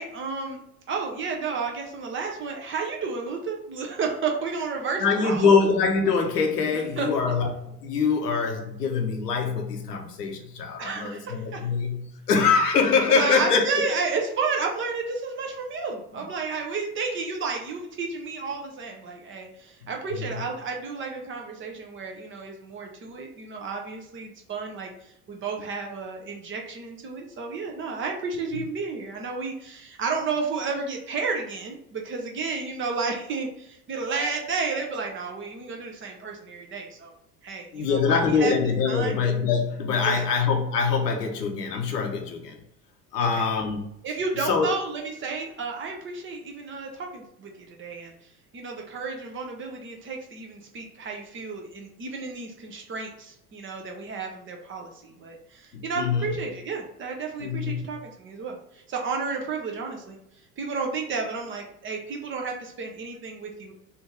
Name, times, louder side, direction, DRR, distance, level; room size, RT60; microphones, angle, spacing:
voice 1, 0.0-5.5 7.0-7.3 10.8-11.6 13.1-37.1 37.4-38.5 38.8-39.2 40.0-40.3 43.2-43.5 44.0-48.1 48.5-60.2 60.6-63.7, right 4 dB, 25° right, 1 dB, 0.7 m, -32 dB
voice 2, 5.0-13.8 20.2-20.4 28.5-28.6 37.7-42.6 43.1-43.9 44.5-44.7 55.7-56.3 57.4-57.8, left 5 dB, 75° left, 3 dB, 0.8 m, -24 dB
3.5 x 2.6 x 4.5 m, 0.77 s
figure-of-eight pair, 75°, 48 cm